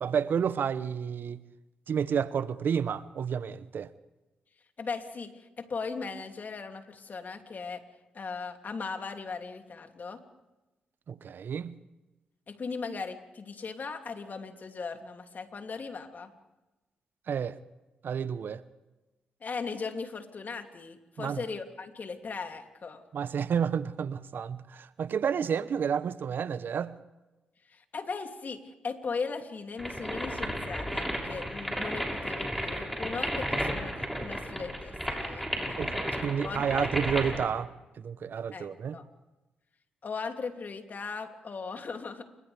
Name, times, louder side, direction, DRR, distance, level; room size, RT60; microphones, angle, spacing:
voice 1, 0.0-1.4 1.9-3.9 11.1-11.7 17.3-17.6 18.0-18.6 21.2-21.4 23.1-26.9 35.8-39.0, right 7 dB, 60° right, 15 dB, 1.0 m, -30 dB
voice 2, 4.8-7.8 8.1-10.2 12.5-16.3 19.4-23.0 27.7-35.8 36.1-36.9 38.5-38.7 38.9-39.0 40.0-42.2, left 4 dB, 50° left, 5 dB, 2.8 m, -38 dB
sound 1, 29.8-37.5, equal, ahead, 6.7 m, -33 dB
29.5 x 25.5 x 3.5 m, 1.0 s
hypercardioid pair, 45°, 4 cm